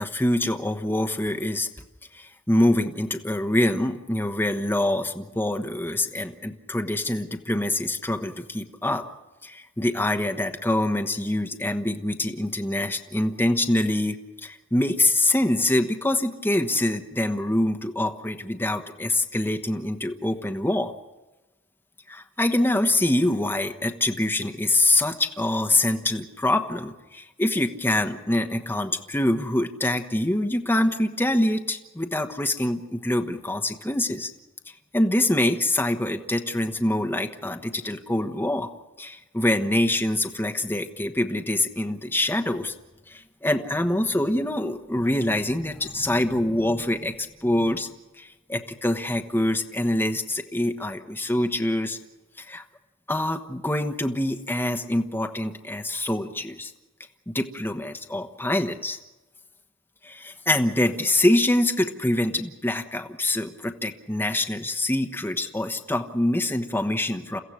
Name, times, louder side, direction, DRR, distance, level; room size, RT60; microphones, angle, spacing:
voice 1, 0.0-1.7 2.1-9.0 9.4-14.2 14.4-20.9 22.1-34.3 34.9-38.7 39.0-42.7 43.1-47.9 48.2-52.0 52.4-52.6 53.1-56.7 57.3-59.0 60.0-67.4, left 1 dB, 10° left, 5 dB, 1.2 m, -25 dB
30.0 x 15.0 x 6.5 m, 1.1 s
head